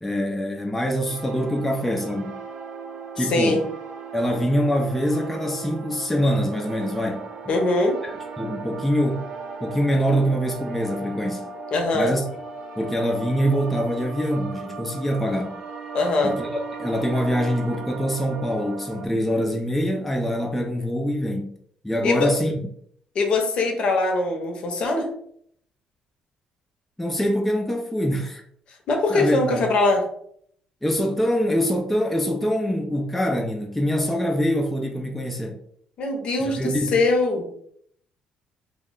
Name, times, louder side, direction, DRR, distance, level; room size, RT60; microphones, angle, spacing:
voice 1, 0.0-2.4 3.2-3.6 4.1-7.2 8.0-9.3 9.6-11.4 11.9-12.2 12.8-15.6 16.2-21.5 21.8-22.5 27.0-28.4 29.1-29.7 30.8-35.6 36.4-37.0, equal, 5° left, 0.3 m, -24 dB
sound 1, 1.0-19.1, right 4 dB, 70° right, 0.5 m, -37 dB
voice 2, 3.2-3.6 7.5-8.0 11.7-12.1 15.9-16.3 22.0-22.3 23.1-25.1 28.9-30.0 36.0-37.5, left 2 dB, 55° left, 0.6 m, -22 dB
2.2 x 2.0 x 3.6 m
cardioid pair, 120°, 2 cm